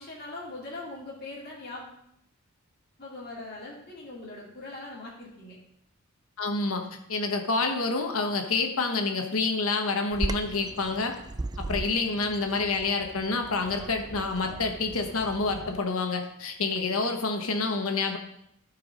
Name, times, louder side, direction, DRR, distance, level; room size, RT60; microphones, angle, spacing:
voice 1, 0.0-2.0 3.0-5.6, left 2 dB, 45° left, -5 dB, 2.3 m, -41 dB
voice 2, 6.4-11.2 11.6-18.2, left 3 dB, 75° left, 4 dB, 1.2 m, -28 dB
Bird vocalization bird call bird song, 10.1-15.8, right 2 dB, 20° right, 0.3 m, -38 dB
13.0 x 4.7 x 5.1 m, 0.76 s
head